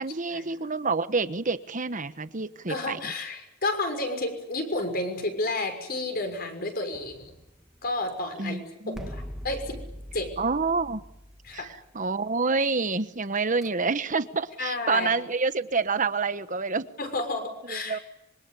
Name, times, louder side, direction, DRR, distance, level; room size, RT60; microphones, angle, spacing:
voice 1, 0.0-3.1 8.4-9.1 10.4-11.0 11.5-16.8 17.7-18.0, right 4 dB, 40° right, 12 dB, 1.2 m, -28 dB
voice 2, 2.7-7.3 7.8-8.6 8.9-9.8 10.1-10.3 11.4-11.7 14.6-15.1 17.0-18.0, left 2 dB, 50° left, 6 dB, 6.3 m, -31 dB
sound 1, 6.9-8.2 8.9-12.3 13.4-13.7, equal, ahead, 2.2 m, -42 dB
26.0 x 24.5 x 8.5 m, 0.86 s
head